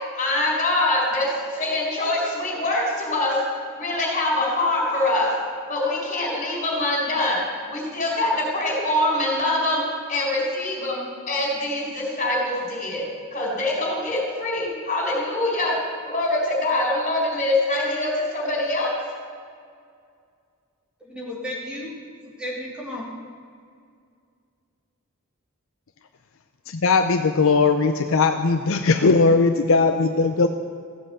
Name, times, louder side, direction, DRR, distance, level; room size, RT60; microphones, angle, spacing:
voice 1, 0.1-3.4 3.8-5.3 5.7-7.4 7.7-9.8 10.1-11.0 11.3-13.0 13.3-15.7 16.0-18.9, left 2 dB, 35° left, -2 dB, 4.3 m, -24 dB
voice 2, 21.0-21.9 22.4-23.1, left 1 dB, 5° right, -4 dB, 2.6 m, -33 dB
voice 3, 26.7-30.5, left 4 dB, 65° left, 6 dB, 0.6 m, -19 dB
15.5 x 7.9 x 8.1 m, 2.2 s
head